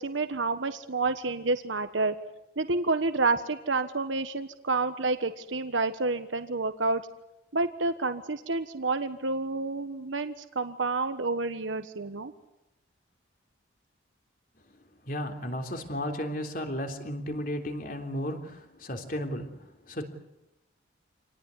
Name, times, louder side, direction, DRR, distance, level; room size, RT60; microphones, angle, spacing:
voice 1, 0.0-2.1 2.6-7.0 7.5-12.3, right 3 dB, 85° right, 9 dB, 1.4 m, -29 dB
voice 2, 15.0-20.0, equal, 45° left, 4 dB, 3.5 m, -34 dB
28.0 x 19.0 x 9.7 m, 0.91 s
head